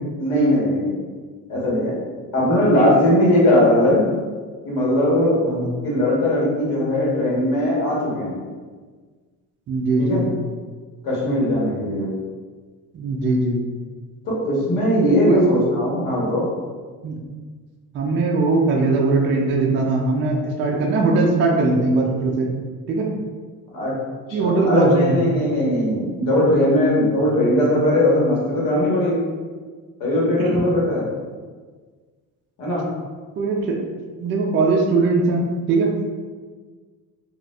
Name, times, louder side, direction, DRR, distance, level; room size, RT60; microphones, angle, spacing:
voice 1, 0.2-0.9 1.5-1.9 2.3-4.0 4.6-5.4 5.8-8.4 10.0-10.2 11.0-12.1 14.2-16.5 23.7-23.9 24.3-29.3 30.0-31.1 32.6-32.9, left 1 dB, 75° left, -6 dB, 1.2 m, -19 dB
voice 2, 9.7-10.3 12.9-13.6 15.2-15.4 17.0-17.2 17.9-22.5 22.9-23.1 24.3-25.2 30.4-30.6 33.4-33.8 34.2-35.4 35.7-35.9, right 3 dB, 35° right, -1 dB, 0.4 m, -20 dB
4.1 x 2.4 x 2.3 m, 1.5 s
cardioid pair, 170°, 33 cm